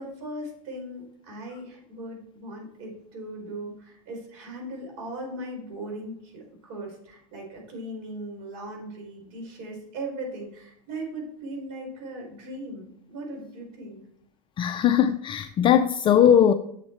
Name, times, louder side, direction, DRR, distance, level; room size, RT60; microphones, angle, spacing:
voice 1, 0.0-14.0, right 1 dB, 60° right, 4.2 m, -38 dB
voice 2, 14.6-16.5, left 9 dB, 25° left, 0.4 m, -19 dB
7.8 x 7.3 x 4.5 m
supercardioid pair, 120°, 19 cm